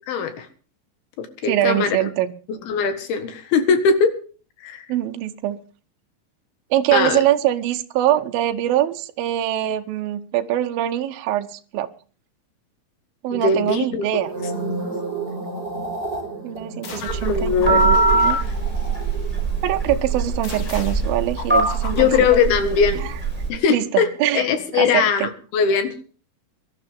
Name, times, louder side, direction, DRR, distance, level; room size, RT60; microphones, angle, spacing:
voice 1, 0.1-0.5 1.2-2.1 2.7-4.1 4.6-4.9 6.9-7.2 13.3-14.1 17.0-18.5 21.9-23.0 23.5-24.1 24.3-25.9, left 6 dB, 80° left, 8 dB, 3.5 m, -20 dB
voice 2, 1.5-2.3 4.9-5.6 6.7-11.9 13.2-14.3 16.4-18.4 19.6-22.1 23.0-23.1 23.7-24.5 24.7-25.3, right 13 dB, 75° right, 6 dB, 2.6 m, -23 dB
Echo Pad Lofi, 14.1-22.5 22.7-23.1, right 3 dB, 25° right, 5.1 m, -33 dB
sound 1, 16.8-17.3 17.6-19.4 20.4-23.0, left 5 dB, 60° left, 3.5 m, -37 dB
Telephone, 17.1-23.5, right 3 dB, 5° right, 4.2 m, -22 dB
23.0 x 11.5 x 3.5 m, 0.40 s
omnidirectional pair, 4.4 m